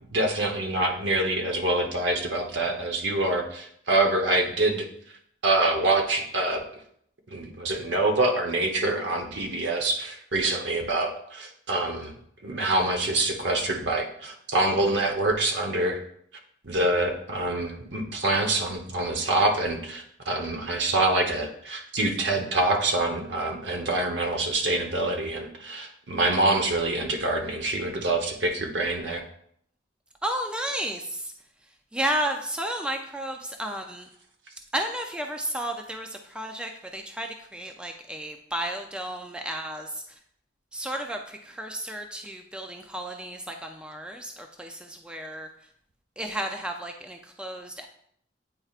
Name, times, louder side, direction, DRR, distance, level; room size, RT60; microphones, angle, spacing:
voice 1, 0.1-5.2 5.4-6.6 7.3-12.2 12.4-16.0 16.6-29.2, right 2 dB, 65° right, 3 dB, 1.0 m, -26 dB
voice 2, 30.2-31.3 31.9-34.1 34.7-40.0 40.7-45.5 46.2-47.9, right 1 dB, 5° right, 3 dB, 0.4 m, -32 dB
8.9 x 4.4 x 2.4 m, 0.68 s
head